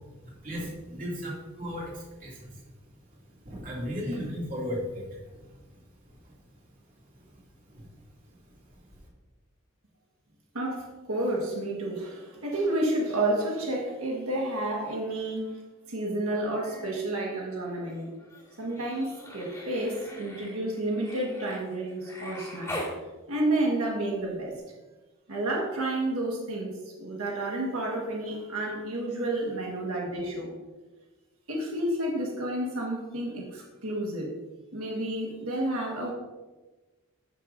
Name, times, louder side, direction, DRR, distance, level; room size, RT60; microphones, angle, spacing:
voice 1, 0.2-2.6 3.4-5.5 6.1-6.3 7.7-7.8, equal, 40° right, -5 dB, 2.5 m, -36 dB
voice 2, 10.5-15.6 15.9-18.1 18.6-22.8 23.3-24.5 25.3-30.5 31.5-34.3 34.7-36.1, right 1 dB, 90° right, -2 dB, 1.5 m, -30 dB
Human voice, 16.3-17.1 17.4-23.0 24.6-24.7, left 1 dB, 15° left, 2.2 m, -43 dB
12.5 x 6.3 x 2.6 m, 1.2 s
head